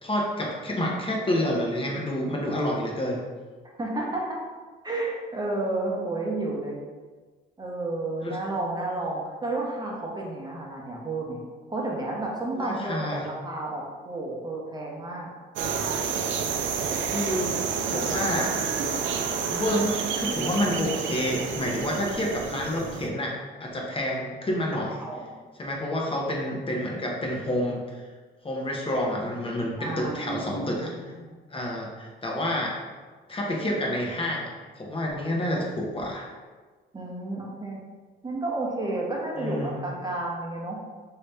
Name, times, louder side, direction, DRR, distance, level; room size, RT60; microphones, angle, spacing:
voice 1, 0.0-3.2 8.2-8.4 12.6-13.3 17.1-17.6 17.8-18.6 19.5-23.3 23.6-25.0 25.6-28.0 28.4-31.1 31.5-32.8 33.3-36.3 39.4-39.8, left 1 dB, 25° left, -2 dB, 0.8 m, -29 dB
voice 2, 3.8-4.4 4.8-6.8 7.6-11.4 11.7-15.3 25.0-25.3 29.8-31.3 36.9-37.8 38.2-40.8, right 2 dB, 20° right, -3 dB, 0.9 m, -31 dB
sound 1, 15.6-23.1, right 6 dB, 70° right, 0.4 m, -29 dB
3.0 x 2.8 x 3.4 m, 1.4 s
cardioid pair, 90°, 20 cm